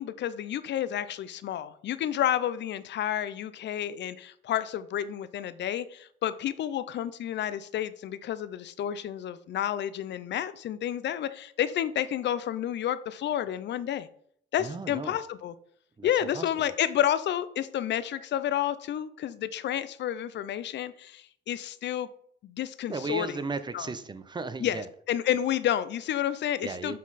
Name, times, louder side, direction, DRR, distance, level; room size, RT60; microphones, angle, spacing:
voice 1, 0.0-14.1 14.5-15.5 16.0-22.1 22.4-23.3 23.7-23.9 24.6-24.8 25.1-27.0, left 11 dB, 65° left, 15 dB, 0.5 m, -30 dB
voice 2, 14.6-15.2 16.0-16.7 22.9-24.9 26.6-27.0, right 4 dB, 20° right, 13 dB, 0.6 m, -35 dB
7.3 x 3.9 x 4.1 m, 0.64 s
cardioid pair, 90°, 20 cm